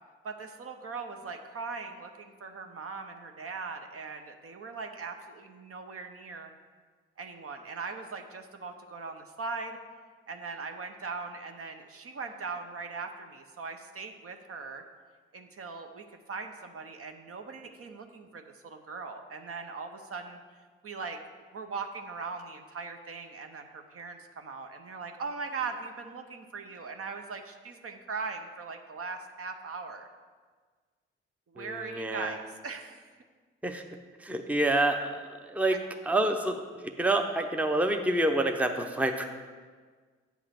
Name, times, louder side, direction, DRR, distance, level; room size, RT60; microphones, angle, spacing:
voice 1, 0.2-6.5 7.2-9.8 10.3-14.8 15.3-20.4 20.8-21.2 21.5-30.1 31.5-33.1 35.7-35.8, right 4 dB, 45° right, 5 dB, 0.8 m, -40 dB
voice 2, 31.6-32.3 33.6-33.8 34.2-35.8 36.1-36.6 37.0-39.3, right 1 dB, 5° right, 5 dB, 0.7 m, -27 dB
8.1 x 3.8 x 6.3 m, 1.5 s
hypercardioid pair, 40°, 31 cm